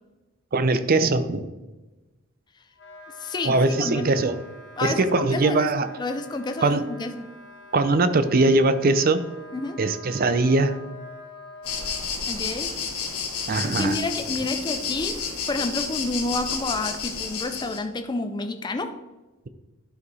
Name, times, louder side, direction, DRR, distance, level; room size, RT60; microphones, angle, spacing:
voice 1, 0.5-1.4 3.4-4.4 4.8-5.9 6.6-6.8 7.7-9.2 9.8-10.8 13.5-14.0, right 2 dB, 40° right, 11 dB, 0.5 m, -21 dB
Wind instrument woodwind instrument, 2.7-12.0, left 1 dB, 55° left, 1.4 m, -45 dB
voice 2, 3.2-4.2 4.8-5.7 6.0-7.3 9.5-9.8 12.3-12.7 13.6-19.0, left 2 dB, 20° left, 8 dB, 0.4 m, -30 dB
sound 1, 11.6-17.8, left 6 dB, 85° left, 1.4 m, -30 dB
11.5 x 4.8 x 4.1 m, 1.1 s
head